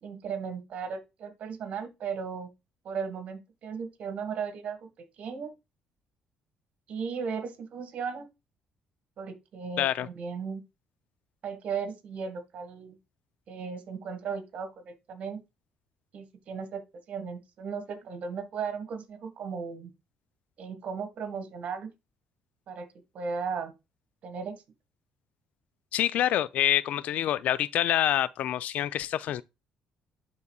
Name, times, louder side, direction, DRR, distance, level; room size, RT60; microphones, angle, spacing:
voice 1, 0.0-2.5 2.8-5.5 6.9-8.3 9.2-10.6 11.4-13.0 13.5-15.4 16.1-16.8 17.1-19.9 20.6-21.9 22.7-22.9 23.1-23.7 24.2-24.6, right 6 dB, 60° right, 1.7 m, -36 dB
voice 2, 9.8-10.1 25.9-29.4, left 12 dB, 70° left, 0.4 m, -26 dB
10.5 x 4.1 x 2.3 m
supercardioid pair, 80°, 3 cm